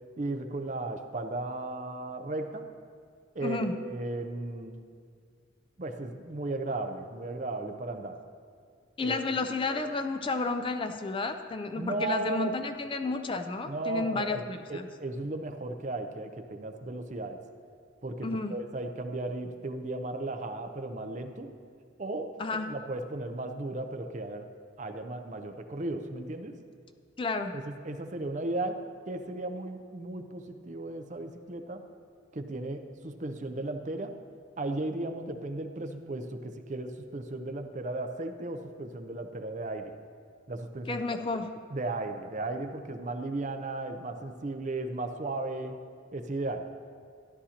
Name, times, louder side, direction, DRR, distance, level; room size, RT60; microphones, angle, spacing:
voice 1, 0.2-2.7 3.3-4.8 5.8-8.2 9.0-9.2 11.8-12.6 13.6-14.4 14.7-17.4 18.0-21.5 22.0-22.3 22.7-24.5 24.8-26.6 27.6-28.8 29.1-31.8 32.3-34.1 34.6-39.9 40.5-41.0 41.7-45.8 46.1-46.7, right 2 dB, 40° right, 7 dB, 0.6 m, -35 dB
voice 2, 3.4-3.8 9.0-14.9 18.2-18.6 22.4-22.7 27.2-27.6 40.9-41.5, left 3 dB, 25° left, 7 dB, 0.4 m, -31 dB
13.5 x 11.0 x 2.9 m, 2.1 s
head